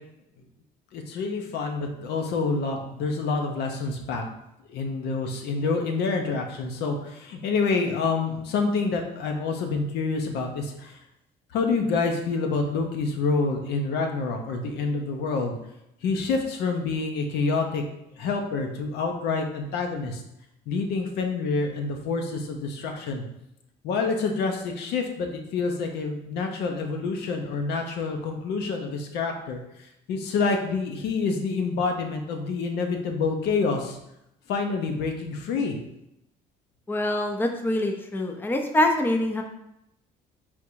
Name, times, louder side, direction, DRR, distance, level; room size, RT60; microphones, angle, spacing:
voice 1, 0.9-4.2 4.7-11.0 11.5-15.5 16.0-17.8 18.1-20.2 20.7-23.2 23.8-34.0 34.5-35.8, left 4 dB, 80° left, 3 dB, 0.8 m, -27 dB
voice 2, 36.9-39.4, left 1 dB, 10° left, 4 dB, 0.5 m, -24 dB
3.6 x 2.6 x 4.5 m, 0.83 s
cardioid pair, 110°, 17 cm